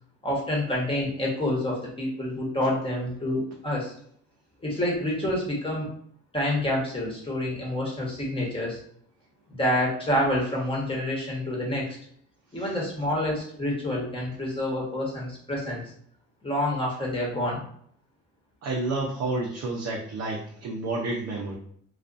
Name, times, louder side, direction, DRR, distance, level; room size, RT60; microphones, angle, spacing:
voice 1, 0.2-3.9 4.6-5.9 6.3-8.8 9.5-12.0 12.5-15.8 16.4-17.6, left 1 dB, 20° left, -3 dB, 1.1 m, -28 dB
voice 2, 18.6-21.5, right 2 dB, 55° right, -2 dB, 0.6 m, -30 dB
2.4 x 2.4 x 2.5 m, 0.63 s
cardioid pair, 90°, 30 cm